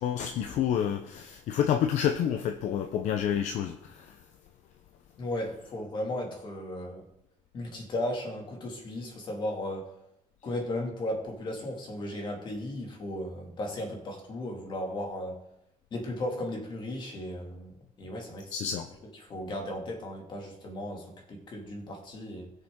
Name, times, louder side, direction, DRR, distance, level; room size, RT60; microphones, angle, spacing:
voice 1, 0.0-4.2 18.5-18.9, left 9 dB, 60° left, 6 dB, 0.8 m, -29 dB
voice 2, 5.2-7.1 7.5-9.9 10.4-15.4 15.9-18.7 19.2-22.5, left 1 dB, 35° left, 1 dB, 2.4 m, -35 dB
20.5 x 6.8 x 3.8 m, 0.83 s
cardioid pair, 155°, 14 cm